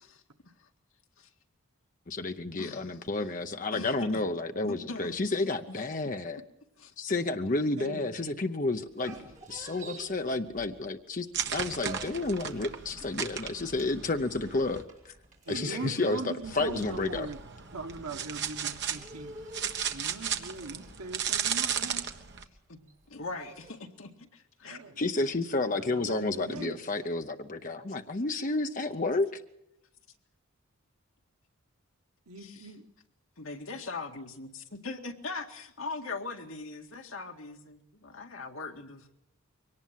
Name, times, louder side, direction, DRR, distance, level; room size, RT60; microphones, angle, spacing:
voice 1, 2.1-6.4 7.0-9.1 9.5-11.3 11.5-15.1 15.5-17.3 25.0-29.4, left 2 dB, 35° left, 0.8 m, -31 dB
voice 2, 2.6-3.0 3.7-4.2 4.6-5.1 5.7-5.8 6.8-6.9 16.0-16.1 22.7-22.8 23.1-24.8 32.4-32.6 33.4-39.0, left 3 dB, 70° left, 2.0 m, -40 dB
voice 3, 7.8-8.3 15.4-17.4 17.7-19.4 19.9-22.1 24.7-25.0 25.6-26.8 32.3-32.9, right 3 dB, 90° right, 1.6 m, -40 dB
sound 1, 8.8-11.1 11.4-23.7, right 2 dB, 35° right, 4.1 m, -49 dB
sound 2, 11.3-14.8 16.4-22.4, right 8 dB, 50° right, 1.4 m, -35 dB
23.5 x 18.5 x 7.5 m
head